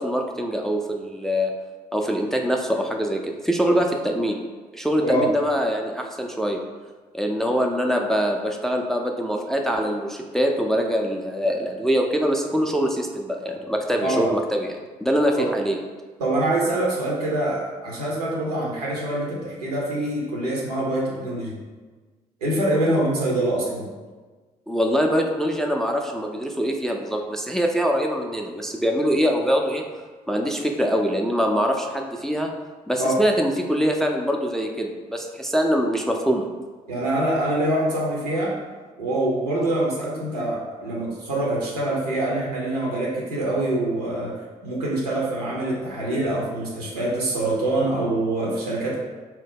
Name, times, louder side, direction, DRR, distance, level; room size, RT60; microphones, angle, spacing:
voice 1, 0.0-1.5 1.9-4.4 4.7-6.6 7.1-15.8 24.7-29.8 30.3-32.5 32.9-36.4, equal, ahead, 2 dB, 0.3 m, -23 dB
voice 2, 14.0-14.3 15.3-15.5 16.2-21.6 22.4-23.9 33.0-33.1 36.9-38.5 39.0-44.3 44.6-49.0, right 1 dB, 85° right, -4 dB, 0.6 m, -25 dB
2.7 x 2.0 x 3.5 m, 1.4 s
figure-of-eight pair, 45°, 20 cm